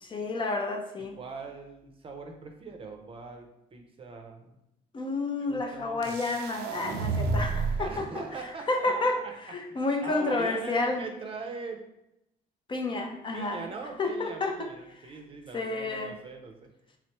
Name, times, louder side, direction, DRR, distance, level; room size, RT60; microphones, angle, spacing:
voice 1, 0.0-1.1 4.9-8.1 8.7-9.2 9.5-11.1 12.7-13.6 14.0-14.7 15.5-16.1, left 3 dB, 30° left, 2 dB, 0.5 m, -30 dB
voice 2, 1.0-4.6 5.4-6.2 7.8-9.3 9.7-11.8 13.3-16.7, right 4 dB, 35° right, 3 dB, 0.6 m, -41 dB
sound 1, 6.0-8.0, right 3 dB, 75° right, 0.5 m, -30 dB
3.6 x 3.2 x 3.0 m, 0.84 s
cardioid pair, 110°, 17 cm